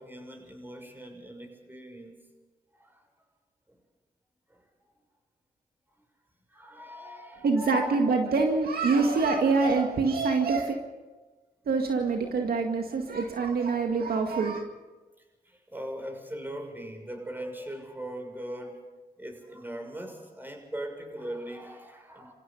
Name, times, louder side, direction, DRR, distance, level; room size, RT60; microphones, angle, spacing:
voice 1, 0.0-2.2 2.7-3.1 3.7-3.8 4.5-4.7 6.0-6.1 6.5-7.9 15.4-18.8 19.2-22.3, right 1 dB, 10° right, 3 dB, 6.7 m, -40 dB
voice 2, 7.4-10.7 11.7-14.6, right 4 dB, 70° right, 3 dB, 2.1 m, -25 dB
29.0 x 16.0 x 5.5 m, 1.2 s
cardioid pair, 55°, 16 cm